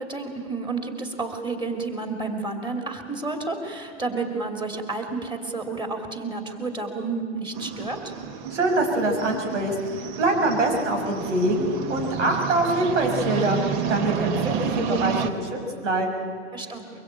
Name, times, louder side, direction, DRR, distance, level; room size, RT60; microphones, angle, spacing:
voice 1, 0.0-8.2 16.5-16.8, right 3 dB, 15° right, 4 dB, 3.0 m, -31 dB
sound 1, 7.5-15.3, right 8 dB, 40° right, 1.6 m, -31 dB
voice 2, 8.5-13.6 13.9-16.3, right 2 dB, 85° right, 2 dB, 6.0 m, -24 dB
23.5 x 22.5 x 9.0 m, 2.1 s
hypercardioid pair, 140°, 36 cm